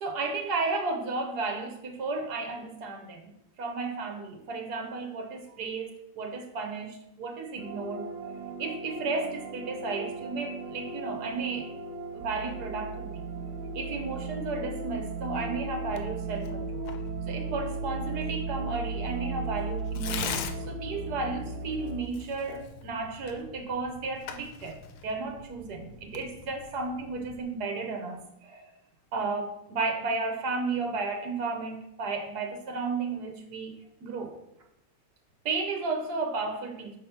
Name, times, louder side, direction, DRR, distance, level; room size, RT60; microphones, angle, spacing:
voice 1, 0.0-11.7 12.1-13.3 13.7-16.8 17.3-24.8 25.0-28.7 29.1-33.8 34.0-34.3 35.4-37.0, right 3 dB, 55° right, 1.4 m, -33 dB
sound 1, 7.6-22.0, right 3 dB, 80° right, 1.5 m, -36 dB
Tearing, 15.9-27.4, left 6 dB, 85° left, 1.5 m, -43 dB
6.4 x 4.2 x 5.7 m
omnidirectional pair, 2.3 m